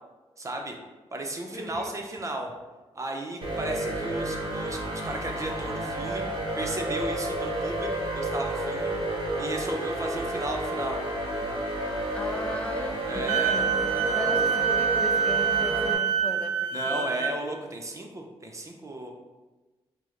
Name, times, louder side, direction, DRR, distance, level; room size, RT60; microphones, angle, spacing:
voice 1, 0.4-0.8 1.1-2.5 2.9-8.9 9.4-11.0 11.3-11.6 13.1-13.6 13.9-14.4 16.7-19.1, right 1 dB, 30° right, 2 dB, 0.7 m, -35 dB
voice 2, 1.5-1.9 12.1-13.8 14.1-17.3, left 1 dB, 10° left, 5 dB, 0.4 m, -38 dB
sound 1, 3.4-15.9, right 1 dB, 50° right, 1.0 m, -31 dB
Wind instrument woodwind instrument, 13.3-17.3, right 7 dB, 70° right, 0.4 m, -26 dB
4.4 x 2.1 x 3.7 m, 1.2 s
cardioid pair, 70°, 11 cm